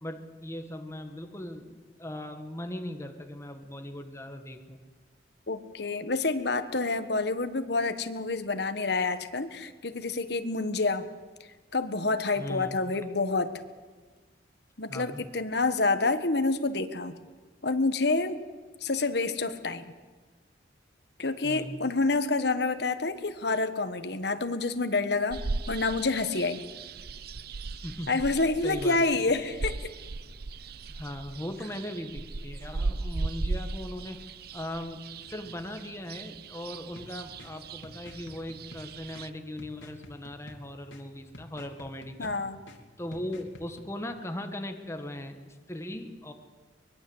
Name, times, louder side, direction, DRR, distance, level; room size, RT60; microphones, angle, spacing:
voice 1, 0.0-4.8 12.4-12.9 14.9-15.3 21.4-21.8 27.7-28.1 28.6-29.0 30.9-34.2 34.5-42.3 43.0-46.3, left 1 dB, 15° left, 6 dB, 1.6 m, -39 dB
voice 2, 5.5-11.1 11.7-13.5 14.8-17.2 17.6-18.4 18.8-19.9 21.2-26.6 28.1-29.9 42.2-42.6, left 3 dB, 60° left, 10 dB, 1.4 m, -28 dB
sound 1, 25.3-39.3, right 3 dB, 55° right, 0.7 m, -37 dB
sound 2, 37.0-43.9, left 1 dB, 90° left, 2.8 m, -51 dB
23.5 x 21.5 x 8.0 m, 1.4 s
head